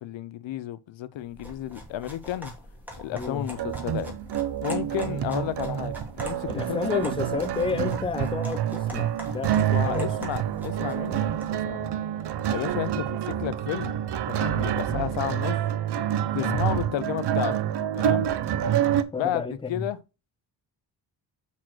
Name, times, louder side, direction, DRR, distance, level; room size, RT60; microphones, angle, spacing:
voice 1, 0.0-2.5 3.0-4.1 4.6-7.1 9.7-12.0 12.5-13.9 14.3-15.6 16.3-17.5 18.0-18.3 19.2-19.4 19.7-20.0, left 12 dB, 75° left, 0.7 m, -32 dB
sound 1, 1.3-11.6, equal, 5° right, 2.5 m, -43 dB
voice 2, 3.1-3.5 6.5-10.1 14.8-15.0 16.4-16.6 19.1-19.9, left 4 dB, 10° left, 0.5 m, -31 dB
sound 2, 3.6-19.0, right 10 dB, 60° right, 0.7 m, -27 dB
6.1 x 4.3 x 6.1 m
cardioid pair, 120°, 45 cm